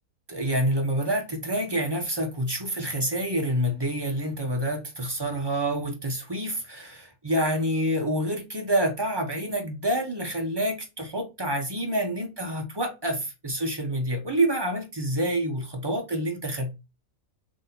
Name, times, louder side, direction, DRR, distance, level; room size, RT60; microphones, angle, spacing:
voice 1, 0.3-16.7, right 1 dB, 30° right, 0.5 m, -27 dB
3.7 x 2.7 x 3.8 m
omnidirectional pair, 1.5 m